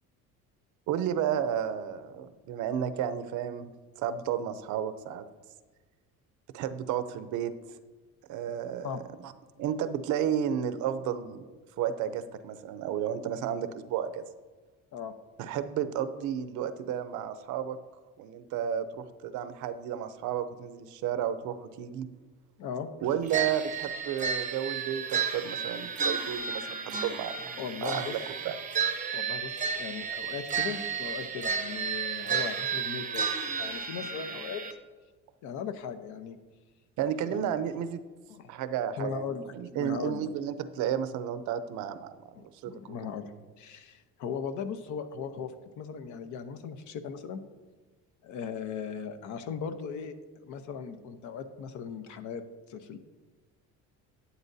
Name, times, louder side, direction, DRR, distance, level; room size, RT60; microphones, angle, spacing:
voice 1, 0.9-3.7 4.0-5.2 6.5-7.5 8.3-9.0 9.2-9.3 9.6-11.5 11.8-14.2 15.4-17.8 18.2-22.1 23.0-27.5 27.8-28.2 28.4-28.5 37.0-38.0 38.5-42.1 42.6-42.7, right 9 dB, 70° right, 11 dB, 0.7 m, -32 dB
voice 2, 22.6-22.9 27.6-28.1 29.1-33.3 33.5-34.6 35.4-36.4 37.3-37.6 38.3-38.5 39.0-40.3 42.4-47.4 48.2-50.1 50.4-52.4 52.7-53.0, left 6 dB, 70° left, 9 dB, 0.9 m, -38 dB
sound 1, 23.3-34.7, right 6 dB, 25° right, 0.7 m, -32 dB
11.0 x 9.4 x 2.7 m, 1.3 s
cardioid pair, 125°, 31 cm